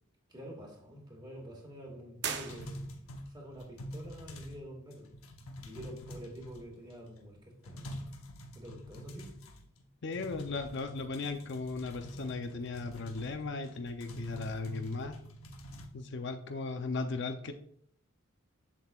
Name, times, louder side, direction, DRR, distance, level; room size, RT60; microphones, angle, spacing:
voice 1, 0.3-2.8 3.3-5.1 5.6-8.1 8.5-9.3, equal, 20° right, 0 dB, 1.9 m, -47 dB
sound 1, 2.2-3.2, right 7 dB, 55° right, 0.7 m, -39 dB
sound 2, 2.5-4.7 4.9-6.9 7.3-7.4 7.6-9.8 10.1-15.9, equal, 80° left, 0.9 m, -46 dB
voice 2, 10.0-15.2 15.9-17.5, left 3 dB, 55° left, 6 dB, 0.6 m, -37 dB
7.5 x 7.4 x 2.4 m, 0.65 s
head